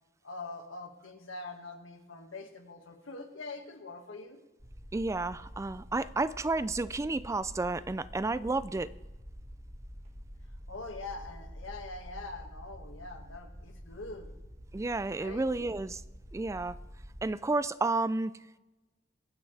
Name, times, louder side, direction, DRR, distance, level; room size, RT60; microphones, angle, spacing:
voice 1, 0.2-4.4 10.5-14.3 15.2-15.7, left 3 dB, 85° left, 2.0 m, -44 dB
sound 1, 4.6-17.2, equal, 35° right, 1.8 m, -48 dB
voice 2, 4.9-8.9 14.7-16.0 16.3-16.8 17.2-18.6, right 3 dB, 15° right, 0.3 m, -31 dB
23.5 x 9.7 x 3.4 m
head